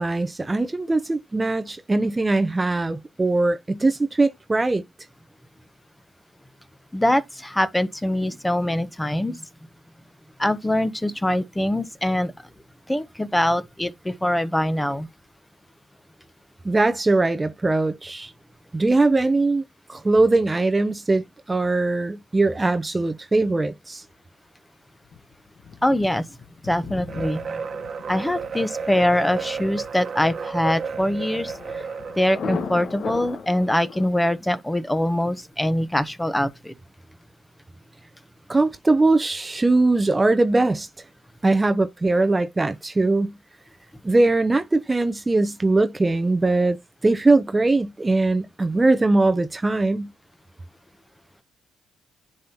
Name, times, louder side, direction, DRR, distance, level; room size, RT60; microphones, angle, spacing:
voice 1, 0.0-4.8 16.6-18.3 18.7-19.6 19.9-24.0 38.5-40.9 41.4-43.3 44.0-46.8 47.0-50.1, right 2 dB, 20° right, 0.7 m, -21 dB
voice 2, 6.9-9.4 10.4-12.3 12.9-15.1 25.8-26.2 26.6-27.5 28.1-31.5 32.2-36.7, left 1 dB, 10° left, 1.0 m, -23 dB
Thunder, 25.1-34.1, left 5 dB, 55° left, 1.3 m, -38 dB
sound 1, 27.1-32.5, right 5 dB, 45° right, 1.2 m, -33 dB
10.0 x 5.5 x 2.9 m
cardioid pair, 90°, 0 cm